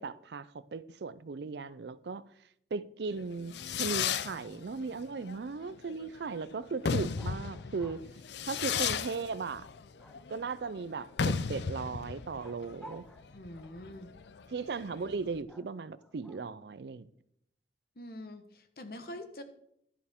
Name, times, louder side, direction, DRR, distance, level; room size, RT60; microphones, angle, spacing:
voice 1, 0.0-2.2 2.7-8.0 8.4-9.7 10.3-13.0 14.5-17.1, right 4 dB, 75° right, 0.5 m, -37 dB
Fireworks, 3.2-15.4, left 6 dB, 80° left, 0.5 m, -35 dB
sound 1, 7.1-8.1 10.0-10.6 12.4-13.9 15.5-16.6, equal, 5° left, 0.7 m, -55 dB
voice 2, 13.3-14.1 18.0-19.4, left 1 dB, 55° left, 1.1 m, -45 dB
11.0 x 11.0 x 3.6 m
head